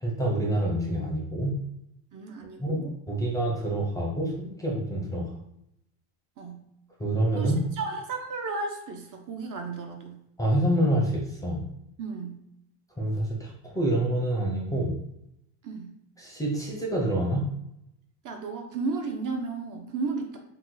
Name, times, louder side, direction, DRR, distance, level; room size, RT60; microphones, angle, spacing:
voice 1, 0.0-1.6 2.6-5.3 7.0-7.6 10.4-11.6 13.0-15.0 16.2-17.5, right 1 dB, 5° left, -2 dB, 0.5 m, -27 dB
voice 2, 2.1-2.9 6.4-6.6 7.3-10.2 12.0-12.4 15.6-15.9 18.2-20.4, right 4 dB, 40° right, 3 dB, 0.5 m, -34 dB
2.9 x 2.2 x 3.7 m, 0.80 s
supercardioid pair, 110°, 49 cm